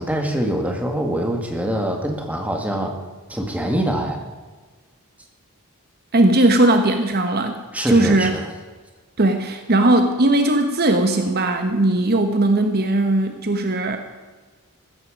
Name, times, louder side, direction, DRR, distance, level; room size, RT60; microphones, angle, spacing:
voice 1, 0.0-3.0 3.3-4.3 7.7-8.5, right 1 dB, 5° right, 2 dB, 2.0 m, -24 dB
voice 2, 6.1-7.6 7.9-8.3 9.2-14.0, right 1 dB, 45° right, 6 dB, 1.1 m, -18 dB
15.5 x 13.5 x 5.1 m, 1.4 s
head